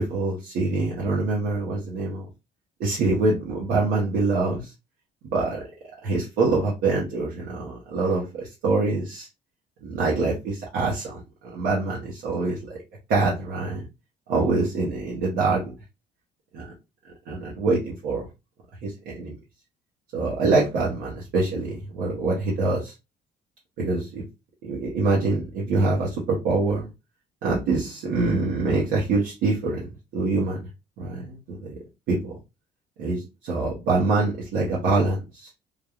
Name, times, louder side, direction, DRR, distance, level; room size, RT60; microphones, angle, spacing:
voice 1, 0.0-2.3 2.8-4.7 5.2-5.6 6.0-9.3 9.8-12.8 13.1-13.9 14.3-15.7 16.5-16.7 17.3-18.3 18.8-19.4 20.1-22.9 23.8-24.3 24.6-26.9 27.4-30.6 31.0-31.7 32.1-32.4 33.0-35.5, right 3 dB, 80° right, -4 dB, 0.9 m, -25 dB
3.2 x 2.2 x 2.3 m, 0.25 s
cardioid pair, 110°, 17 cm